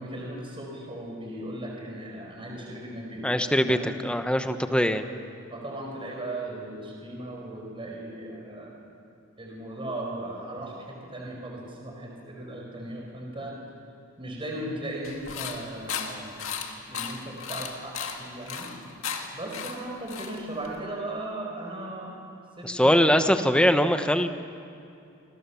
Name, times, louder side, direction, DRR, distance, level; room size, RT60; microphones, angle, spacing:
voice 1, 0.0-3.4 3.7-3.9 4.6-5.0 5.5-8.7 9.4-13.6 14.2-16.5 16.9-18.7 19.3-22.1 22.6-23.4, right 1 dB, 25° right, -1 dB, 4.8 m, -37 dB
voice 2, 3.2-5.1 22.6-24.3, equal, 5° left, 8 dB, 1.0 m, -22 dB
sound 1, 15.0-20.8, left 6 dB, 65° left, 2.2 m, -36 dB
27.5 x 26.0 x 7.1 m, 2.6 s
head